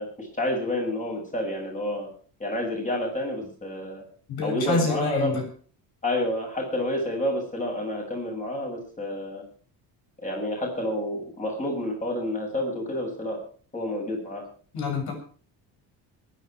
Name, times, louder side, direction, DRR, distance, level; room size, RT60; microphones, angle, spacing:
voice 1, 0.0-2.1 2.4-4.0 4.4-5.4 6.0-9.4 10.2-13.4 13.7-14.4, left 1 dB, 20° left, 0 dB, 7.7 m, -29 dB
voice 2, 4.3-5.3 14.7-15.1, left 4 dB, 60° left, 4 dB, 7.3 m, -27 dB
23.0 x 10.5 x 4.8 m, 0.42 s
cardioid pair, 160°, 42 cm